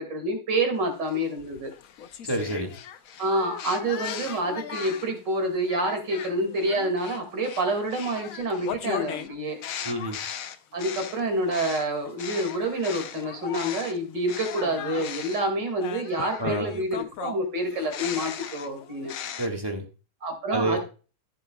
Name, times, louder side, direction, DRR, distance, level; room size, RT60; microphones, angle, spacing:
voice 1, 0.0-1.7 3.2-9.6 10.7-19.1 20.2-20.8, right 1 dB, 85° right, 4 dB, 2.9 m, -28 dB
sound 1, 1.1-5.2 5.7-14.0 14.3-19.5, left 9 dB, 60° left, 1.0 m, -37 dB
voice 2, 2.2-2.7 9.8-10.2 16.4-16.7 19.4-19.8 20.5-20.8, right 2 dB, 15° right, 3 dB, 1.5 m, -28 dB
14.0 x 7.8 x 2.3 m, 0.34 s
omnidirectional pair, 1.9 m